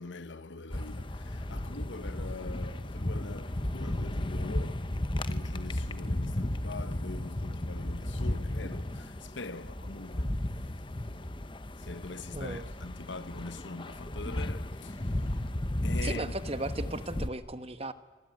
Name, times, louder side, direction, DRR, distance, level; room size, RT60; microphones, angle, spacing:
voice 1, 0.0-4.9 5.3-10.4 11.8-15.5 15.8-16.3, left 3 dB, 70° left, 1.2 m, -43 dB
sound 1, 0.7-17.3, left 1 dB, 25° left, 1.0 m, -34 dB
voice 2, 12.3-12.7 16.0-17.9, right 2 dB, 30° right, 1.2 m, -36 dB
25.5 x 23.5 x 9.4 m
head